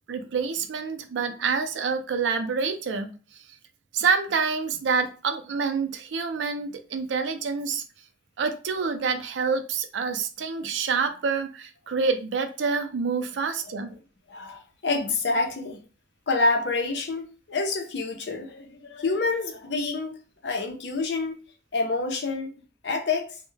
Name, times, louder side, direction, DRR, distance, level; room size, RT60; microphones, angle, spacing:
voice 1, 0.1-3.1 3.9-7.8 8.4-13.9, right 5 dB, 85° right, 0.4 m, -27 dB
voice 2, 14.3-15.8 16.3-21.4 21.7-22.5 22.8-23.4, left 3 dB, 70° left, 0.5 m, -27 dB
2.2 x 2.1 x 3.1 m
head